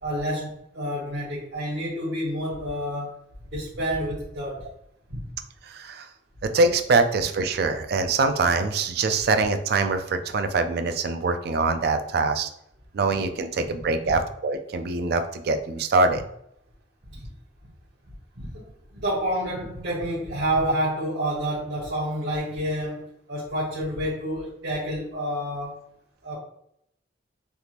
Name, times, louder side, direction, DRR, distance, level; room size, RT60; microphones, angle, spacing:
voice 1, 0.0-3.2 3.4-4.7 5.1-5.3 14.0-14.2 17.1-17.3 18.4-25.8 26.2-26.4, equal, 80° right, -7 dB, 1.0 m, -29 dB
voice 2, 5.7-6.1 6.4-12.5 12.9-16.2, right 3 dB, 60° right, 8 dB, 0.4 m, -24 dB
3.4 x 2.9 x 2.4 m, 0.74 s
head